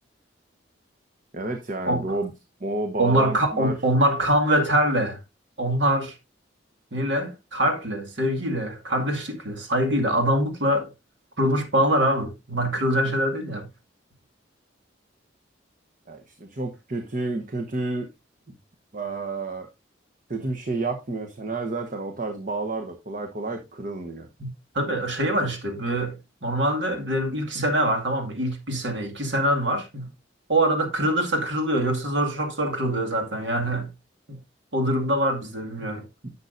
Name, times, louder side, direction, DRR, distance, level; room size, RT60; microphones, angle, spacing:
voice 1, 1.3-2.3 2.6-3.8 16.1-18.1 18.9-19.7 20.3-24.3 36.2-36.3, right 2 dB, 45° right, 1.0 m, -30 dB
voice 2, 3.0-5.2 5.6-6.2 6.9-10.9 11.4-13.7 24.4-26.2 26.4-30.1 30.5-33.9 34.3-34.4 34.7-36.1, right 1 dB, 75° right, 2.1 m, -24 dB
10.5 x 7.1 x 2.6 m
head